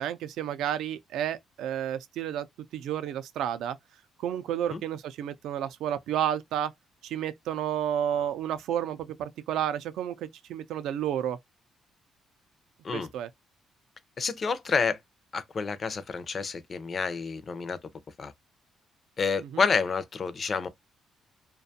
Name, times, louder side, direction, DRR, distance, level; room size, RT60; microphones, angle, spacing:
voice 1, 0.0-2.5 2.7-3.8 4.2-6.7 7.0-11.4 12.9-13.3 19.4-19.6, right 10 dB, 85° right, 0.3 m, -31 dB
voice 2, 14.2-15.0 15.3-17.8 18.2-18.3 19.2-20.7, left 5 dB, 30° left, 0.4 m, -29 dB
2.4 x 2.2 x 2.6 m
cardioid pair, 150°, 0 cm